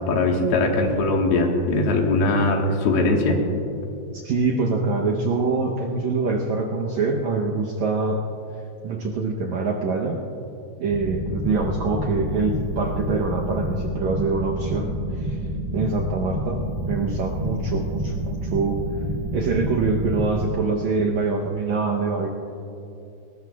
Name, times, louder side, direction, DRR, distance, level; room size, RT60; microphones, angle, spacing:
voice 1, 0.1-3.4, left 2 dB, 90° left, 1 dB, 3.4 m, -20 dB
voice 2, 4.1-8.2 8.8-10.2 10.8-14.9 15.1-15.4 15.7-18.8 19.3-22.3, right 4 dB, 75° right, -1 dB, 1.7 m, -24 dB
sound 1, 10.9-20.5, right 1 dB, 25° right, 0.9 m, -29 dB
20.5 x 19.0 x 2.3 m, 2.7 s
omnidirectional pair, 4.4 m